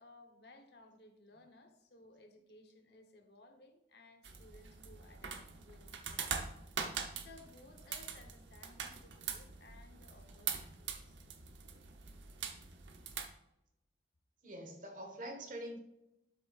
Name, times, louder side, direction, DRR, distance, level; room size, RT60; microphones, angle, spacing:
voice 1, 0.0-6.4 7.1-11.2, left 2 dB, 65° left, 5 dB, 1.1 m, -60 dB
sound 1, 4.2-13.3, right 6 dB, 90° right, 0.9 m, -43 dB
voice 2, 14.4-15.8, right 1 dB, 45° right, 4 dB, 1.4 m, -45 dB
12.0 x 6.8 x 2.5 m, 0.88 s
head